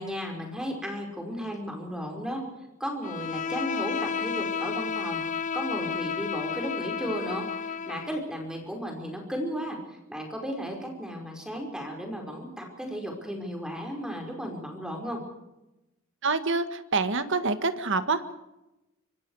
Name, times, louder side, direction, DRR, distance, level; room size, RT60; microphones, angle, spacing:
voice 1, 0.0-2.4 2.8-5.2 5.5-9.8 10.1-15.2, equal, 5° right, 1 dB, 5.1 m, -34 dB
Bowed string instrument, 3.0-8.2, left 6 dB, 35° left, 0.7 m, -32 dB
voice 2, 16.2-18.3, right 4 dB, 65° right, 9 dB, 1.8 m, -26 dB
25.5 x 25.5 x 4.9 m, 0.94 s
head